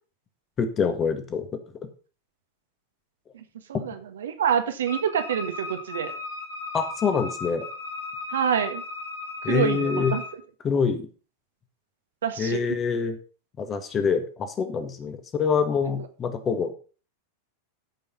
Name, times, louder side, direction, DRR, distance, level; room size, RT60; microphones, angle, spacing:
voice 1, 0.6-1.6 3.7-3.8 6.7-7.7 9.4-10.1 10.6-11.1 12.4-13.2 13.6-16.7, left 6 dB, 25° left, 9 dB, 1.7 m, -25 dB
voice 2, 3.7-6.1 8.3-8.8 9.4-10.2 12.2-12.6, right 8 dB, 65° right, 8 dB, 1.6 m, -26 dB
Wind instrument woodwind instrument, 4.9-10.4, left 3 dB, 90° right, 5.3 m, -36 dB
14.0 x 5.5 x 5.5 m, 0.38 s
figure-of-eight pair, 90°, 0 cm